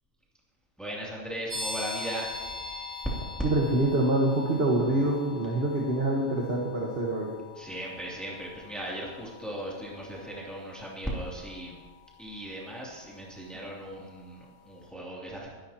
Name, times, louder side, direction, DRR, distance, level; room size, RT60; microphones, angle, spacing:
voice 1, 0.8-2.7 7.6-11.8 12.2-15.5, right 1 dB, ahead, -5 dB, 2.8 m, -38 dB
sound 1, 1.5-14.0, left 3 dB, 65° right, 5.0 m, -43 dB
voice 2, 3.4-7.3, right 2 dB, 45° right, -2 dB, 1.6 m, -26 dB
23.0 x 11.5 x 3.0 m, 1.4 s
omnidirectional pair, 1.4 m